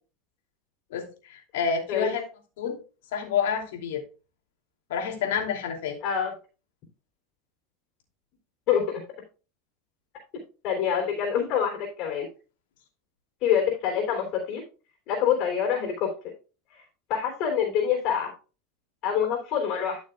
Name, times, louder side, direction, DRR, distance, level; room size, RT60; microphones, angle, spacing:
voice 1, 0.9-2.2 2.6-2.8 3.1-4.0 4.9-6.0, left 7 dB, 85° left, 2 dB, 2.7 m, -28 dB
voice 2, 6.0-6.3 8.7-9.0 10.6-11.7 12.0-12.3 13.4-14.6 15.1-16.1 16.7-16.8 17.1-18.3 19.0-20.0, left 8 dB, 50° left, 2 dB, 3.4 m, -25 dB
13.0 x 6.4 x 2.3 m, 0.33 s
supercardioid pair, 140°, 0 cm